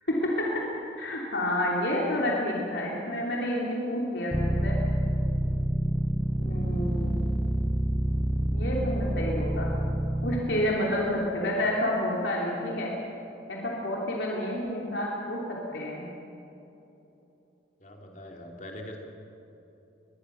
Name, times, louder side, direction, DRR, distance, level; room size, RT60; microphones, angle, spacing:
voice 1, 0.1-0.5 1.0-4.8 6.4-7.2 8.5-9.7 10.2-12.9 13.5-15.4 15.7-16.1, left 1 dB, 70° left, -3 dB, 3.1 m, -29 dB
sound 1, 4.3-10.4, right 1 dB, 5° right, 0.9 m, -27 dB
voice 2, 5.9-6.3 17.8-19.0, left 1 dB, 40° left, 1 dB, 2.9 m, -43 dB
23.5 x 21.0 x 6.3 m, 3.0 s
head